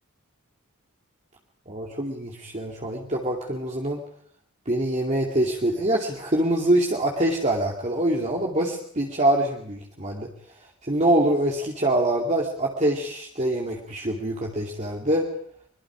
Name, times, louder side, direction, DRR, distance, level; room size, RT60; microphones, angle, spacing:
voice 1, 1.7-4.0 4.7-10.3 10.9-15.3, right 1 dB, 30° right, -1 dB, 2.6 m, -24 dB
24.0 x 22.5 x 5.0 m, 0.63 s
head